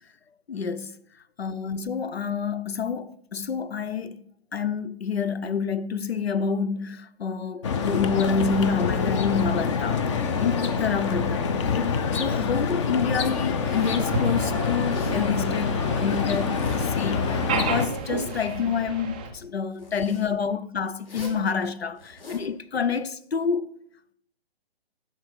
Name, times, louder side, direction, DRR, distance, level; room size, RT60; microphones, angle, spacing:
voice 1, 0.5-1.0 1.4-4.3 4.5-23.7, left 6 dB, 80° left, 0.8 m, -28 dB
sound 1, 7.6-17.9, left 5 dB, 30° left, 0.7 m, -26 dB
Zipper (clothing), 13.5-14.1 14.8-15.3 16.3-17.2 17.6-18.7 19.7-20.3 21.0-21.4 22.0-22.5, left 2 dB, 65° left, 3.9 m, -44 dB
sound 2, 13.6-19.3, right 4 dB, 10° right, 0.4 m, -33 dB
11.5 x 4.7 x 5.9 m
figure-of-eight pair, 135°, 30 cm